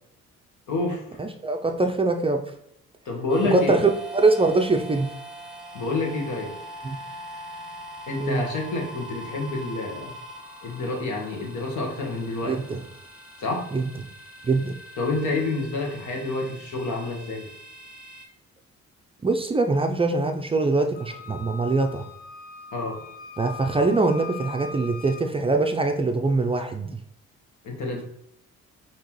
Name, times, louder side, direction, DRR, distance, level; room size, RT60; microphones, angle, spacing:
voice 1, 0.7-1.0 3.0-3.8 5.7-6.5 8.1-10.1 10.6-12.5 13.4-13.6 15.0-17.5 22.7-23.0 27.6-28.0, left 2 dB, 80° left, 1 dB, 1.3 m, -28 dB
voice 2, 1.2-2.4 3.5-5.1 6.8-7.0 8.2-8.5 12.5-12.8 13.7-13.9 14.4-14.7 19.2-22.0 23.4-27.0, right 3 dB, 20° right, 5 dB, 0.4 m, -23 dB
sound 1, 3.3-18.3, right 1 dB, 5° right, 1.2 m, -42 dB
Wind instrument woodwind instrument, 20.9-25.3, left 5 dB, 30° left, 0.8 m, -41 dB
5.3 x 2.9 x 3.0 m, 0.76 s
cardioid pair, 90°, 30 cm